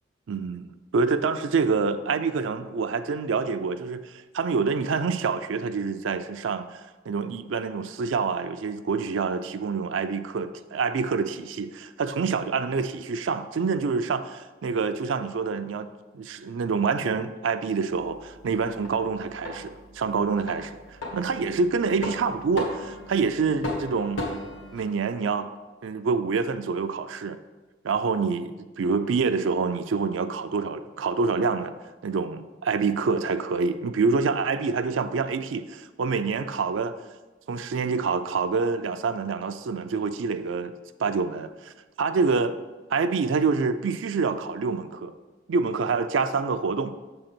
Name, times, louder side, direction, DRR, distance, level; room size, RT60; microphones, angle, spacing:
voice 1, 0.3-15.9 16.1-24.2 24.7-25.5 25.8-27.4 27.8-31.7 32.0-37.0 37.5-40.7 41.0-42.5 42.9-45.1 45.5-47.0, right 4 dB, 70° right, 10 dB, 0.4 m, -27 dB
sound 1, 17.9-24.8, left 2 dB, 80° left, 1.6 m, -37 dB
6.8 x 3.9 x 5.9 m, 1.2 s
head